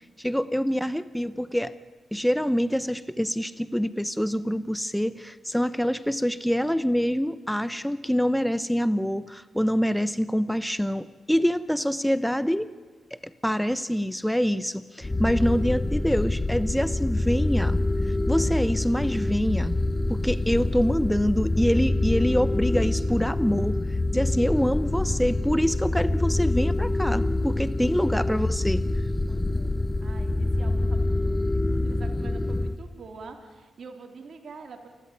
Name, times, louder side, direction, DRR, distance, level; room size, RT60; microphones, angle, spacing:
voice 1, 0.2-1.7 2.1-12.7 13.1-19.8 20.1-28.8, equal, 5° left, 15 dB, 0.9 m, -25 dB
sound 1, 15.0-32.8, left 2 dB, 25° left, 1.1 m, -26 dB
voice 2, 24.2-24.6 27.8-28.2 29.3-34.9, right 4 dB, 60° right, 4 dB, 3.5 m, -46 dB
28.5 x 13.0 x 9.7 m, 1.4 s
supercardioid pair, 45°, 0 cm